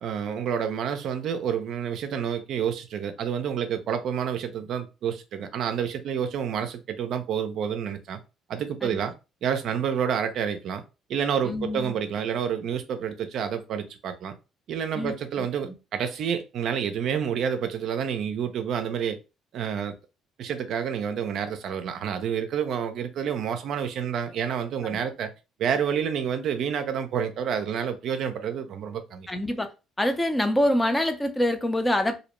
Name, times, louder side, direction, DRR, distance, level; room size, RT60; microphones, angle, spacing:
voice 1, 0.0-8.2 8.5-9.1 9.4-10.8 11.1-14.3 14.7-19.2 19.5-19.9 20.4-25.3 25.6-29.3, right 8 dB, 65° right, 0.4 m, -29 dB
voice 2, 11.4-11.9 14.9-15.7 24.9-25.0 29.3-29.7 30.0-32.2, left 1 dB, 15° left, 0.6 m, -26 dB
2.5 x 2.0 x 2.9 m
supercardioid pair, 70°, 0 cm